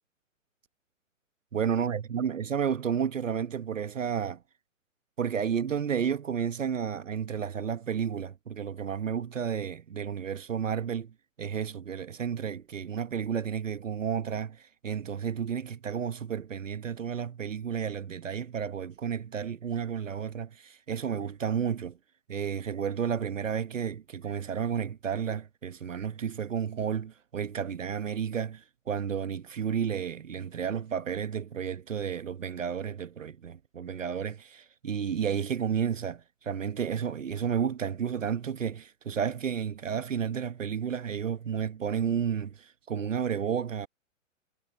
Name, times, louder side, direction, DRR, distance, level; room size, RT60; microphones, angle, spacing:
voice 1, 1.5-4.4 5.2-11.1 11.4-22.0 22.3-43.9, right 7 dB, 70° right, 1.3 m, -32 dB
figure-of-eight pair, 120°, 39 cm